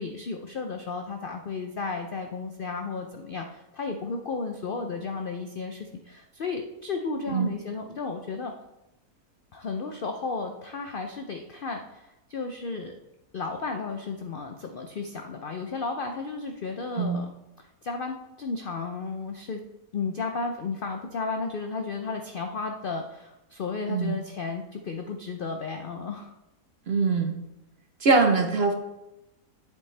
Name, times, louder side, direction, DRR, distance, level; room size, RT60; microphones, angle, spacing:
voice 1, 0.0-8.5 9.5-12.9 13.3-17.3 17.6-19.6 19.9-26.3, left 4 dB, 80° left, 4 dB, 0.4 m, -33 dB
voice 2, 26.9-27.4 28.0-28.7, right 4 dB, 45° right, 4 dB, 0.9 m, -23 dB
7.7 x 7.5 x 3.3 m, 0.93 s
omnidirectional pair, 1.7 m